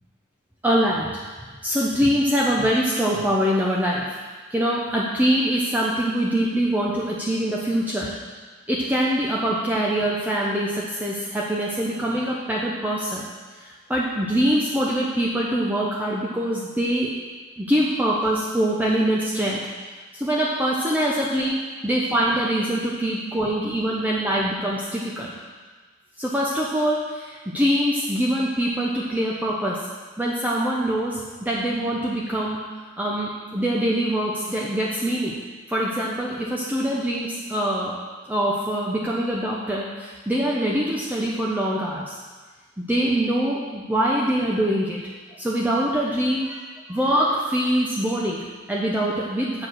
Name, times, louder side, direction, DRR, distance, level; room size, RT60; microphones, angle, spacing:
voice 1, 0.6-1.1 1.6-4.1 4.5-8.2 8.7-13.3 13.5-17.1 17.6-19.6 20.1-25.3 26.2-29.8 30.2-32.6 33.0-35.4 35.7-37.9 38.3-42.2 42.8-45.0 45.4-46.6 46.9-49.7, right 1 dB, 10° right, -4 dB, 0.7 m, -24 dB
7.6 x 4.7 x 6.4 m, 1.4 s
head